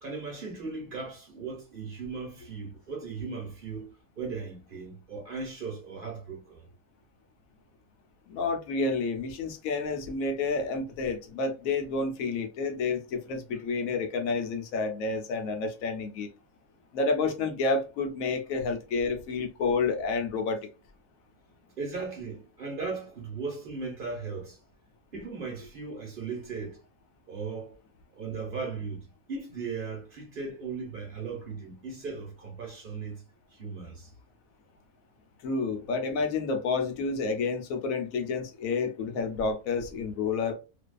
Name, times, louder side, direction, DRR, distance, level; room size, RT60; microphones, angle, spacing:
voice 1, 0.0-6.7 21.8-24.6 25.1-26.8 27.3-27.8 28.1-33.2 33.5-34.1, right 4 dB, 45° right, 0.9 m, -37 dB
voice 2, 8.3-16.3 16.9-20.7 35.4-40.5, left 4 dB, 80° left, 1.1 m, -29 dB
2.6 x 2.3 x 2.2 m
omnidirectional pair, 1.4 m